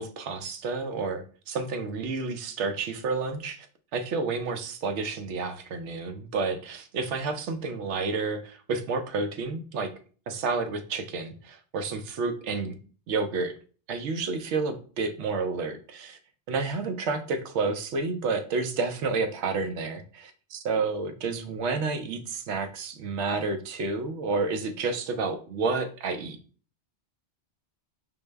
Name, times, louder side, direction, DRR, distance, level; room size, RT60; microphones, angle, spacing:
voice 1, 0.0-3.7 3.9-9.9 10.3-12.8 13.1-13.5 13.9-16.2 16.5-26.4, right 4 dB, 90° right, 8 dB, 0.9 m, -30 dB
5.0 x 2.1 x 3.3 m, 0.40 s
omnidirectional pair, 1.1 m